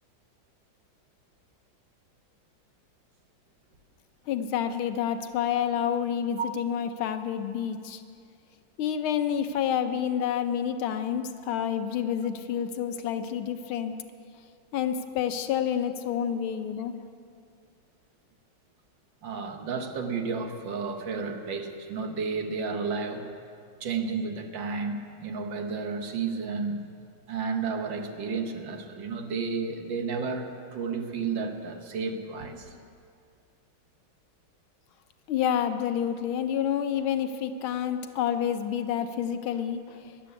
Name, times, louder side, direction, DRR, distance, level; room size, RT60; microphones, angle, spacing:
voice 1, 4.3-8.0 8.8-13.9 14.7-16.9 35.3-40.1, left 9 dB, 85° left, 8 dB, 1.7 m, -29 dB
voice 2, 19.2-23.3 23.8-26.8 27.3-32.7, right 5 dB, 65° right, 5 dB, 1.8 m, -32 dB
13.0 x 11.0 x 8.3 m, 2.3 s
omnidirectional pair, 2.2 m